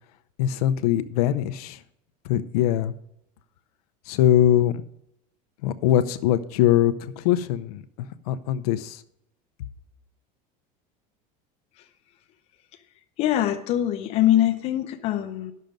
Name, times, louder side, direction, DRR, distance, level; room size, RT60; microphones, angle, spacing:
voice 1, 0.4-1.8 2.2-2.9 4.1-4.8 5.6-7.8 8.3-9.0, left 11 dB, 90° left, 11 dB, 0.7 m, -22 dB
voice 2, 13.2-15.5, left 12 dB, 35° left, 9 dB, 0.6 m, -23 dB
10.5 x 6.5 x 5.2 m, 0.77 s
cardioid pair, 180°, 19 cm